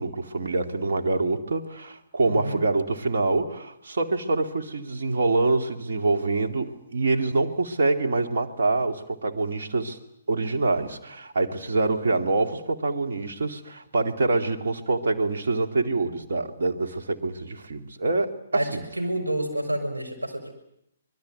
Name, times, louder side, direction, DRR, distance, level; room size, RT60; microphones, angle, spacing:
voice 1, 0.0-10.0 10.3-18.8, right 3 dB, 55° right, 5 dB, 2.5 m, -25 dB
voice 2, 2.3-2.7 18.5-20.6, right 1 dB, 80° right, 2 dB, 6.5 m, -29 dB
25.5 x 21.5 x 9.4 m, 0.77 s
figure-of-eight pair, 125°, 0 cm